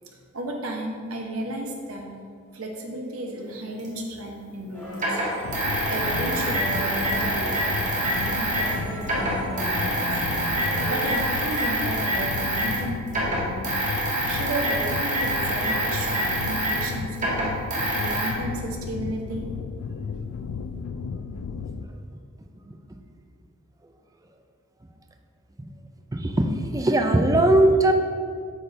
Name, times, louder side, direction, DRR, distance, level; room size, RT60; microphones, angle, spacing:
voice 1, 0.1-2.1 2.5-5.2 5.9-7.6 8.2-10.2 10.8-13.6 14.3-17.6 17.9-19.4, right 1 dB, 75° right, 1 dB, 1.0 m, -33 dB
sound 1, 3.8-3.9 4.9-8.8 9.0-12.8 13.1-18.3, right 1 dB, 35° right, 1.5 m, -26 dB
sound 2, 4.7-11.7, equal, 10° left, 1.2 m, -36 dB
sound 3, 5.4-21.8, left 5 dB, 75° left, 0.3 m, -34 dB
voice 2, 26.1-27.9, right 1 dB, 15° right, 5 dB, 0.4 m, -20 dB
8.5 x 4.2 x 3.3 m, 2.1 s
head